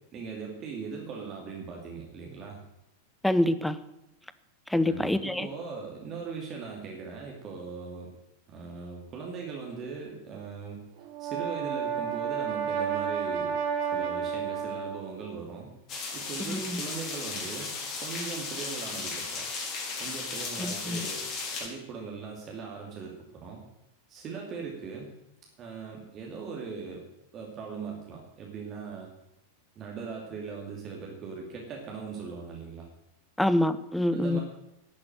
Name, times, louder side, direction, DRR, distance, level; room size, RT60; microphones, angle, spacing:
voice 1, 0.1-2.6 4.8-8.1 8.5-10.8 11.2-13.6 13.9-15.7 16.1-17.7 18.0-19.5 20.0-21.3 21.6-23.6 24.1-25.1 25.6-27.0 27.3-29.1 29.7-32.9 34.1-34.4, right 5 dB, 30° right, 0 dB, 2.7 m, -39 dB
voice 2, 3.2-3.8 4.7-5.5 16.5-16.8 20.6-21.0 33.4-34.4, left 1 dB, 5° left, 14 dB, 0.8 m, -26 dB
Brass instrument, 11.0-15.2, right 7 dB, 50° right, 2.5 m, -31 dB
sound 1, 15.9-21.7, left 4 dB, 30° left, 4.0 m, -35 dB
11.5 x 8.6 x 9.1 m, 0.87 s
figure-of-eight pair, 90°, 0 cm